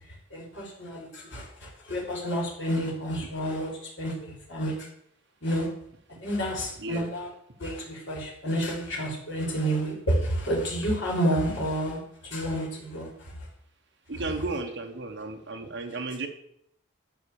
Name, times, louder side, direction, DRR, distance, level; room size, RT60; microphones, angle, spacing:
voice 1, 0.1-4.9 5.4-5.7 6.2-7.3 7.6-13.5, equal, 60° left, -3 dB, 3.5 m, -30 dB
voice 2, 6.8-7.1 14.1-16.3, right 3 dB, 55° right, 3 dB, 1.3 m, -34 dB
11.5 x 4.4 x 7.1 m, 0.73 s
head